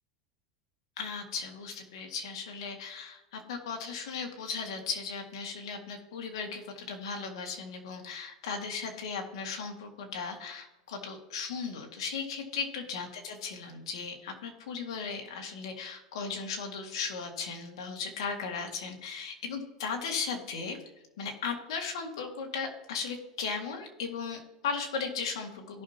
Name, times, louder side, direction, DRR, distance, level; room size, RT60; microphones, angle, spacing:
voice 1, 1.0-20.8 21.2-25.8, left 5 dB, 85° left, 3 dB, 2.1 m, -36 dB
17.0 x 5.8 x 2.9 m, 1.0 s
supercardioid pair, 130°, 3 cm